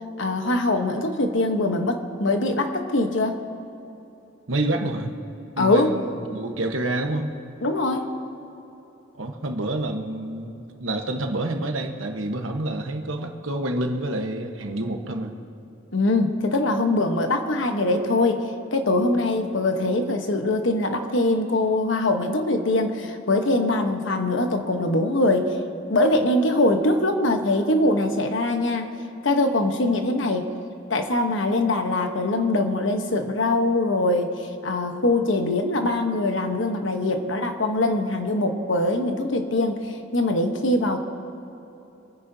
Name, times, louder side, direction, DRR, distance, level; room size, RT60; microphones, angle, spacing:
voice 1, 0.2-3.4 5.6-5.9 7.6-8.1 15.9-25.6 25.9-28.9 29.2-30.5 30.9-41.0, left 2 dB, 70° left, 5 dB, 1.1 m, -22 dB
voice 2, 4.5-5.2 5.6-7.4 9.1-15.3, right 1 dB, 85° right, 4 dB, 1.2 m, -28 dB
26.0 x 9.8 x 2.8 m, 3.0 s
head